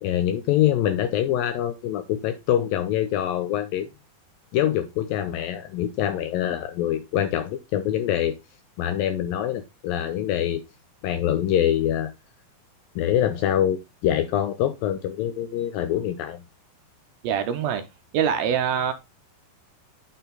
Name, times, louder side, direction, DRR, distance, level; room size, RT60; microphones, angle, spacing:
voice 1, 0.0-3.9 4.5-8.4 8.8-10.6 11.0-12.1 13.0-16.4, left 11 dB, 80° left, 2.1 m, -24 dB
voice 2, 17.2-17.8 18.1-18.9, right 8 dB, 80° right, 2.3 m, -24 dB
9.0 x 4.4 x 3.9 m
omnidirectional pair, 4.7 m